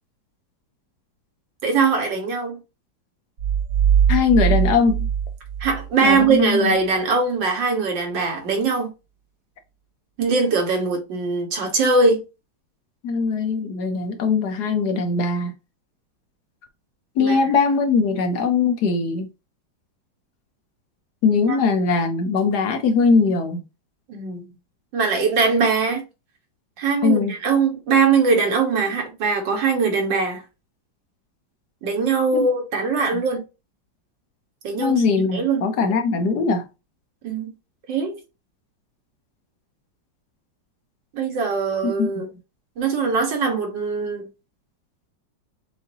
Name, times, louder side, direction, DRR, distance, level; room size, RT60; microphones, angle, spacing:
voice 1, 1.6-2.6 5.6-8.9 10.2-12.2 17.2-17.4 21.5-21.6 24.1-24.5 24.9-26.0 26.8-30.4 31.8-33.4 34.6-35.0 35.3-35.6 37.2-37.5 37.9-38.2 41.1-42.3 42.8-44.3, right 4 dB, 75° right, 2.0 m, -21 dB
sound 1, 3.4-6.3, right 8 dB, 55° right, 1.3 m, -21 dB
voice 2, 4.1-5.0 6.0-6.7 13.0-15.5 17.2-19.3 21.2-23.6 27.0-27.3 32.3-32.5 33.1-33.2 34.8-36.6 42.0-42.1, left 4 dB, 65° left, 1.2 m, -20 dB
6.4 x 2.7 x 2.7 m
omnidirectional pair, 2.0 m